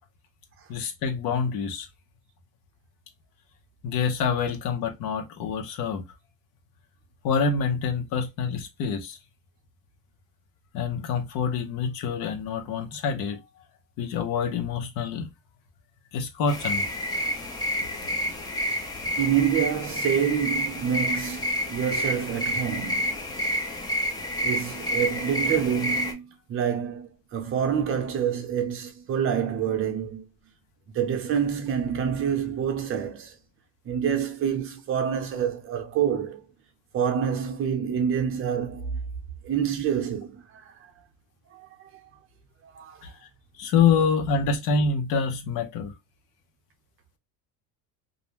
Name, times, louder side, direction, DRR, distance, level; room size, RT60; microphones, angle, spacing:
voice 1, 0.7-1.9 3.8-6.0 7.2-9.2 10.7-13.4 14.0-15.3 16.1-16.8 43.0-43.1 43.6-45.9, left 5 dB, 70° left, 0.8 m, -26 dB
sound 1, 16.5-26.1, equal, 10° left, 0.5 m, -29 dB
voice 2, 19.2-23.5 24.4-30.3 30.9-33.4 33.8-36.4 36.9-39.0 39.4-40.9 41.5-42.0 42.6-43.1, right 8 dB, 35° right, 0.7 m, -27 dB
2.5 x 2.1 x 3.0 m
cardioid pair, 150°, 36 cm